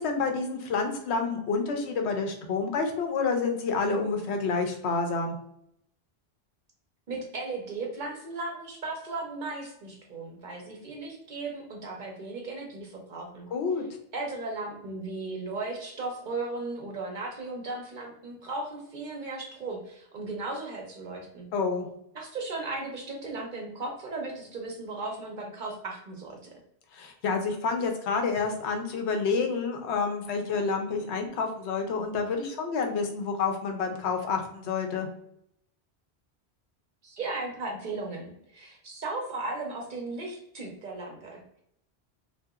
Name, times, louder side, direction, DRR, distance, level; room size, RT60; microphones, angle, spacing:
voice 1, 0.0-5.4 13.5-13.8 21.5-21.9 26.9-35.1, left 4 dB, 80° left, 4 dB, 0.9 m, -29 dB
voice 2, 7.1-13.5 14.1-21.5 22.1-26.5 37.0-41.6, right 3 dB, 55° right, 0 dB, 0.7 m, -36 dB
2.8 x 2.3 x 2.3 m, 0.74 s
omnidirectional pair, 1.1 m